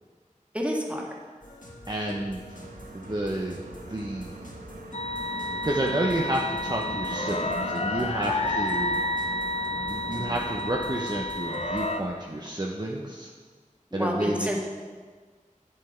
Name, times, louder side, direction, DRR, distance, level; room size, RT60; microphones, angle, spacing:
voice 1, 0.5-1.0 8.4-8.5 13.9-14.6, equal, 10° right, -1 dB, 1.5 m, -29 dB
sound 1, 1.4-12.0, equal, 70° left, 1.4 m, -45 dB
voice 2, 1.9-2.4 2.9-3.6 3.9-4.4 5.6-9.0 9.9-13.3 13.9-14.6, right 1 dB, 30° right, -1 dB, 0.7 m, -30 dB
sound 2, 2.5-10.9, right 2 dB, 85° right, 0.6 m, -41 dB
sound 3, 4.9-12.0, left 2 dB, 50° left, 0.6 m, -30 dB
8.5 x 6.4 x 4.4 m, 1.5 s
wide cardioid pair, 45°, 14 cm